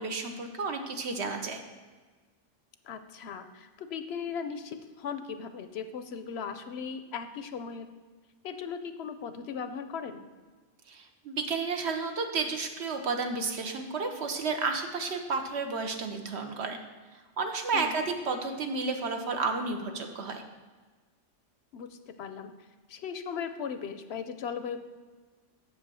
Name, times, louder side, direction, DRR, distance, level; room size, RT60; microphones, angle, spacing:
voice 1, 0.0-1.6 10.9-16.8 17.4-20.4, right 4 dB, 65° right, 5 dB, 1.1 m, -32 dB
voice 2, 2.8-7.9 8.4-10.3 17.7-18.0 21.7-22.5 22.9-24.8, left 6 dB, 65° left, 9 dB, 0.8 m, -38 dB
7.9 x 5.4 x 6.1 m, 1.4 s
omnidirectional pair, 1.2 m